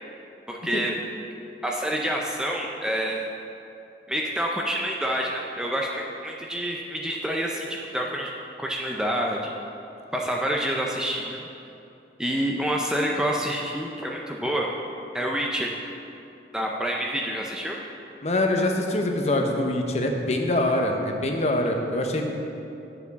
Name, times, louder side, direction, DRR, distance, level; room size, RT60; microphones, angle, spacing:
voice 1, 0.5-0.9 1.6-3.3 4.1-8.3 8.6-9.5 10.1-11.5 12.2-14.7 15.1-15.7 16.5-17.8, equal, 5° right, -1 dB, 0.4 m, -27 dB
voice 2, 18.2-22.2, left 1 dB, 40° left, 3 dB, 0.7 m, -24 dB
9.3 x 7.0 x 4.0 m, 2.8 s
head